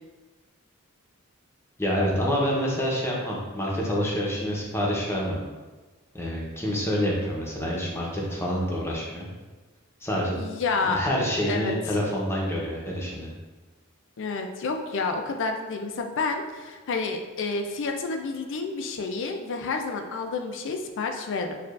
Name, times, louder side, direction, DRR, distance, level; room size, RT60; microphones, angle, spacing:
voice 1, 1.8-5.4 6.1-9.3 10.0-10.4 10.8-13.3, equal, 10° left, -3 dB, 0.8 m, -27 dB
voice 2, 10.4-11.0 11.5-11.7 14.2-21.6, left 4 dB, 60° left, 4 dB, 0.4 m, -29 dB
6.5 x 2.4 x 2.4 m, 1.3 s
head